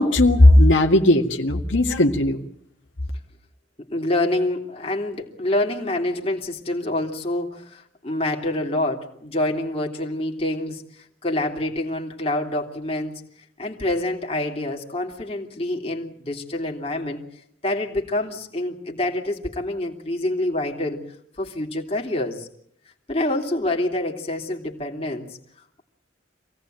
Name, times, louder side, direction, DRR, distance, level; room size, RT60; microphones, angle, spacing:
voice 1, 0.0-2.4, left 1 dB, 80° left, 3 dB, 2.1 m, -16 dB
voice 2, 3.9-10.8 11.2-13.2 13.6-17.2 17.6-21.0 21.4-22.5 23.1-25.3, left 1 dB, 30° left, 1 dB, 2.8 m, -26 dB
26.5 x 17.5 x 9.1 m, 0.70 s
head